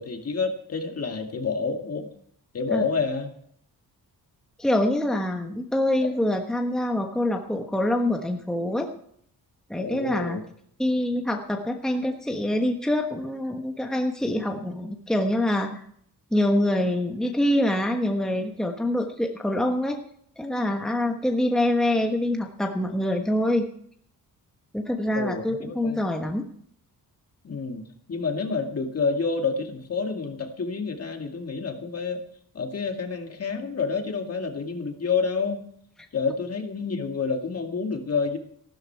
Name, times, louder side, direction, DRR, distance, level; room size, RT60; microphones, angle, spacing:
voice 1, 0.0-2.1 2.5-3.3 9.8-10.4 25.1-26.1 27.4-27.8 28.1-32.2 32.5-35.6 36.1-38.4, left 4 dB, 40° left, 3 dB, 2.2 m, -28 dB
voice 2, 4.6-8.9 9.7-10.4 10.8-15.8 16.3-20.0 20.4-23.7 24.7-26.4, left 1 dB, ahead, 3 dB, 1.2 m, -25 dB
15.5 x 12.5 x 4.6 m, 0.65 s
wide cardioid pair, 135°, 36 cm